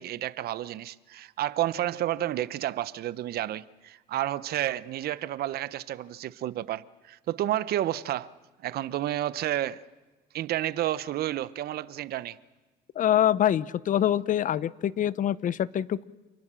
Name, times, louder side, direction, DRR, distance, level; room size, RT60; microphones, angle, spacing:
voice 1, 0.0-8.3 8.6-9.8 10.3-12.4, right 13 dB, 65° right, 0.9 m, -31 dB
voice 2, 13.0-16.0, left 11 dB, 50° left, 0.8 m, -25 dB
28.5 x 20.0 x 7.6 m
cardioid pair, 110°, 17 cm